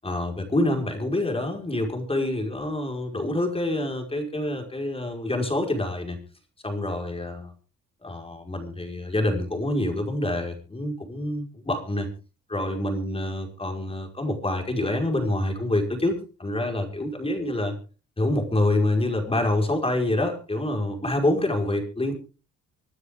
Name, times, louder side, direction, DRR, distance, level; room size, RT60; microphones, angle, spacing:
voice 1, 0.0-6.2 6.6-7.5 8.0-12.1 12.5-17.7 18.2-22.2, left 1 dB, 20° left, 3 dB, 5.2 m, -26 dB
26.5 x 9.7 x 3.8 m, 0.37 s
cardioid pair, 90°, 30 cm